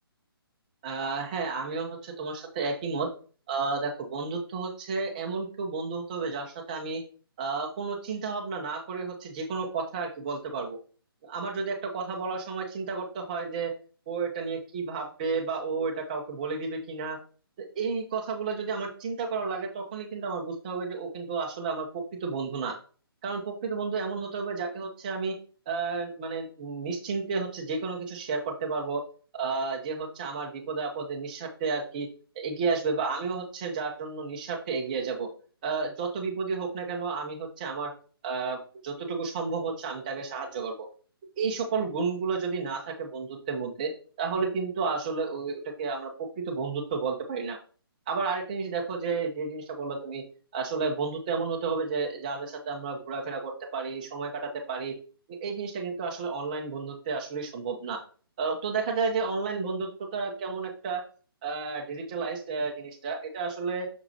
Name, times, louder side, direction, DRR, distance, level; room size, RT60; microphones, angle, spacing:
voice 1, 0.8-3.1 3.5-7.0 7.4-10.8 11.2-13.7 14.1-17.2 17.6-22.8 23.2-25.4 25.7-29.0 29.3-32.1 32.3-35.3 35.6-37.9 38.2-40.9 41.4-43.9 44.2-47.6 48.1-50.2 50.5-55.0 55.3-58.0 58.4-61.0 61.4-63.9, right 4 dB, 20° right, 2 dB, 1.0 m, -32 dB
6.5 x 5.6 x 2.8 m, 0.39 s
hypercardioid pair, 175°, 13 cm